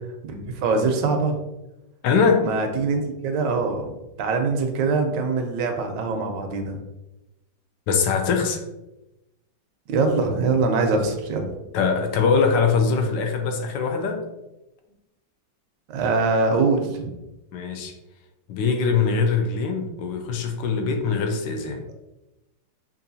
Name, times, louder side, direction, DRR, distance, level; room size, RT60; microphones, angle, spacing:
voice 1, 0.2-1.4 2.4-6.8 9.9-11.5 15.9-17.2, right 4 dB, 75° right, 4 dB, 1.2 m, -23 dB
voice 2, 2.0-2.5 7.9-8.6 11.7-14.2 17.5-17.9 18.5-21.8, left 5 dB, 80° left, 4 dB, 1.3 m, -22 dB
5.5 x 2.5 x 2.6 m, 0.96 s
omnidirectional pair, 2.0 m